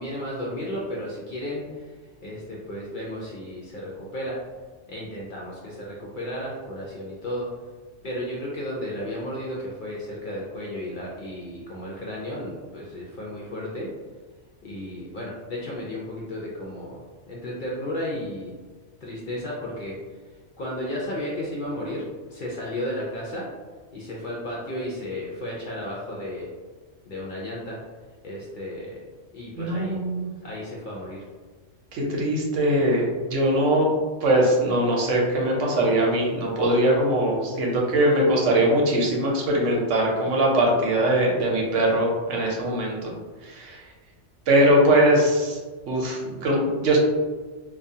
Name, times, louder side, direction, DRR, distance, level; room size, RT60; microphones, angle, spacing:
voice 1, 0.0-1.9 2.2-4.4 4.9-7.5 8.0-13.9 14.6-18.5 19.0-20.0 20.6-23.5 23.9-26.5 27.1-27.8 28.2-29.0 29.3-30.0 30.4-31.2, left 1 dB, 60° left, -5 dB, 0.5 m, -33 dB
voice 2, 29.6-30.3 31.9-33.9 34.2-43.1 43.4-43.8 44.5-45.6 45.9-47.0, right 1 dB, 85° right, -2 dB, 1.0 m, -21 dB
2.3 x 2.3 x 2.7 m, 1.4 s
omnidirectional pair, 1.2 m